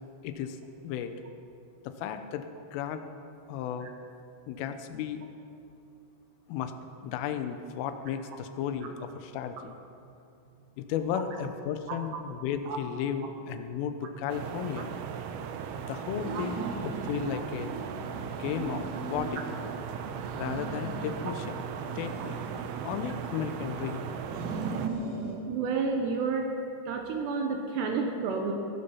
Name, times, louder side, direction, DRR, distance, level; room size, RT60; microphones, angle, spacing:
voice 1, 0.2-0.6 0.8-1.1 1.8-2.5 2.7-3.1 3.5-3.9 4.5-5.2 6.5-6.7 7.0-9.8 10.8-14.9 15.9-17.7 18.4-19.4 20.3-21.6 22.0-22.4 22.8-24.2, left 8 dB, 80° left, 8 dB, 3.4 m, -34 dB
sound 1, 14.3-24.9, right 7 dB, 90° right, 2.2 m, -37 dB
sound 2, 16.0-17.3 17.6-19.7 20.1-21.4 21.8-23.7 24.2-25.4, right 3 dB, 45° right, 3.5 m, -39 dB
voice 2, 16.3-16.7 17.3-17.4 20.1-20.2 25.5-26.5 26.9-28.5, right 5 dB, 70° right, 3 dB, 2.9 m, -31 dB
20.5 x 12.0 x 5.7 m, 2.7 s
omnidirectional pair, 5.8 m